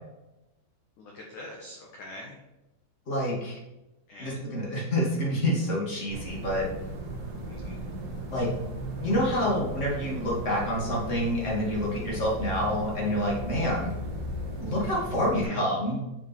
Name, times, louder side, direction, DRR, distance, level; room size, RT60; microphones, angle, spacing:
voice 1, 1.0-2.4 4.1-4.4 7.5-7.8 15.3-15.6, left 1 dB, 65° left, -1 dB, 1.9 m, -43 dB
voice 2, 3.1-3.6 4.2-6.6 8.3-8.5 9.0-13.9 14.6-16.0, left 1 dB, 40° left, -4 dB, 1.0 m, -27 dB
sound 1, 6.1-15.4, right 1 dB, 50° right, 3.0 m, -36 dB
9.6 x 7.1 x 4.5 m, 0.99 s
omnidirectional pair, 5.5 m